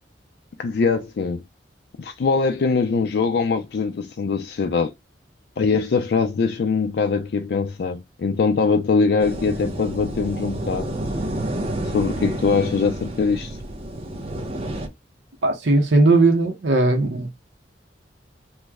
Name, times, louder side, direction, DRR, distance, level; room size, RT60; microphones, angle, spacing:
voice 1, 0.6-1.4 2.0-4.9 5.6-10.9 11.8-13.6, left 4 dB, 60° left, 0.4 m, -22 dB
sound 1, 9.2-14.9, right 1 dB, 35° right, 0.7 m, -30 dB
voice 2, 15.4-17.3, right 2 dB, 85° right, 0.8 m, -18 dB
3.1 x 2.1 x 3.4 m
head